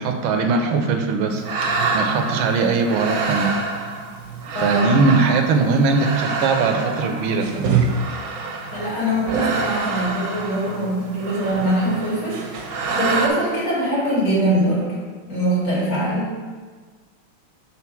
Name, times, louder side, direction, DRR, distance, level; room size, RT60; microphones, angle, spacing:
voice 1, 0.0-1.4 1.9-3.5 4.6-7.9, right 4 dB, 80° right, 5 dB, 1.5 m, -20 dB
sound 1, 1.3-13.3, right 4 dB, 60° right, 1.1 m, -26 dB
voice 2, 4.5-5.0 8.7-14.9 15.3-16.3, right 1 dB, 85° left, -7 dB, 3.2 m, -22 dB
5.9 x 3.9 x 5.9 m, 1.5 s
omnidirectional pair, 2.2 m